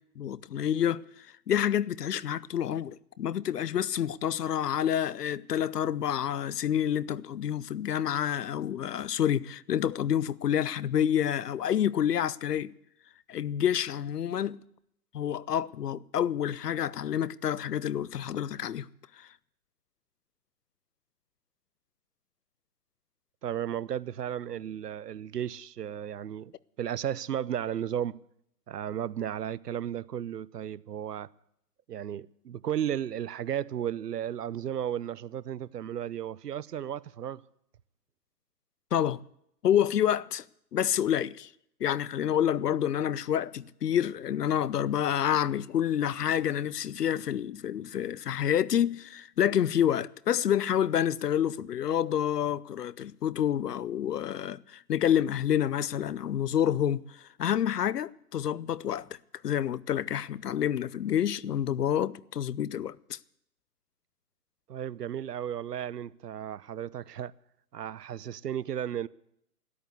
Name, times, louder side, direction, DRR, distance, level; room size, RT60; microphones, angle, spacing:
voice 1, 0.2-12.7 13.3-14.6 15.1-18.9 19.2-19.3 38.9-39.2 39.6-40.4 40.7-41.5 41.8-59.1 59.4-63.2, left 10 dB, 75° left, 0.7 m, -28 dB
voice 2, 23.4-26.5 26.8-28.2 28.7-31.3 31.9-37.4 64.7-67.3 67.7-69.1, right 10 dB, 80° right, 0.7 m, -34 dB
13.5 x 10.5 x 8.1 m
hypercardioid pair, 145°, 47 cm